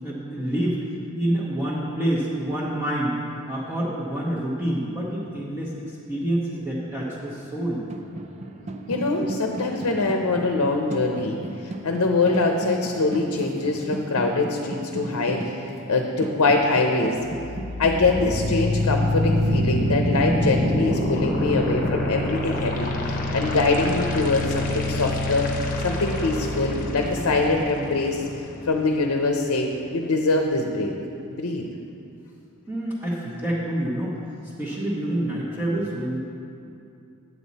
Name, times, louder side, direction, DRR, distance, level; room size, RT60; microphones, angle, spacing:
voice 1, 0.0-0.8 1.1-3.1 3.5-7.8 32.7-34.2 34.6-36.2, right 1 dB, 10° right, -9 dB, 1.0 m, -27 dB
sound 1, 7.4-21.9, right 2 dB, 30° right, 0.4 m, -35 dB
voice 2, 8.9-17.2 17.8-25.5 25.8-28.2 28.7-30.9 31.3-31.7, left 3 dB, 70° left, 3 dB, 0.7 m, -23 dB
sound 2, 17.2-29.2, left 1 dB, 40° left, 0.9 m, -26 dB
8.8 x 8.4 x 4.1 m, 2.6 s
head